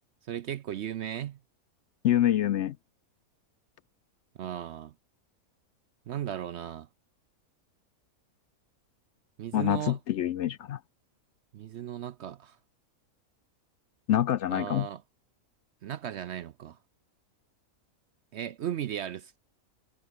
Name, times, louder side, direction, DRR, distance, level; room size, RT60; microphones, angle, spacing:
voice 1, 0.3-1.4 4.4-4.9 6.1-6.9 9.4-10.0 11.5-12.6 14.5-15.0 15.8-16.8 18.3-19.4, right 10 dB, 65° right, 0.7 m, -36 dB
voice 2, 2.0-2.8 9.5-10.8 14.1-14.9, left 12 dB, 65° left, 0.8 m, -26 dB
omnidirectional pair, 1.5 m